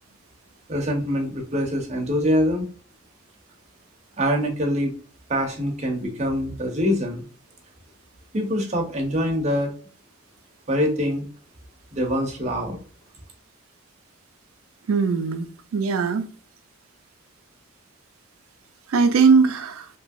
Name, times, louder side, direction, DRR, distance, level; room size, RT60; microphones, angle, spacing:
voice 1, 0.7-2.7 4.2-4.9 5.3-7.2 8.3-9.7 10.7-11.2 11.9-12.8, equal, 35° right, 0.7 m, -24 dB
voice 2, 14.9-16.3 18.9-19.9, right 5 dB, 90° right, 0.4 m, -20 dB
3.0 x 2.6 x 2.3 m
head